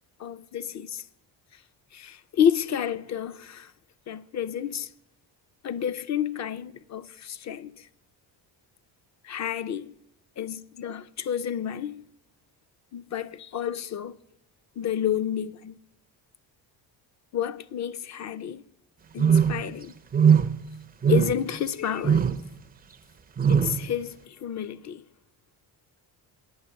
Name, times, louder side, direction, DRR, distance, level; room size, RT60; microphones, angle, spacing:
voice 1, 0.2-1.0 1.9-3.7 4.1-4.9 5.6-7.9 9.2-10.0 10.4-12.0 12.9-14.2 14.8-15.7 17.3-18.6 19.1-19.9 21.1-22.2 23.5-25.0, left 9 dB, 40° left, 0.4 m, -30 dB
sound 1, 19.2-19.7 20.1-20.6 21.0-21.5 22.0-22.4 23.4-23.8, right 7 dB, 20° right, 0.4 m, -20 dB
9.5 x 8.6 x 6.9 m
cardioid pair, 125°, 44 cm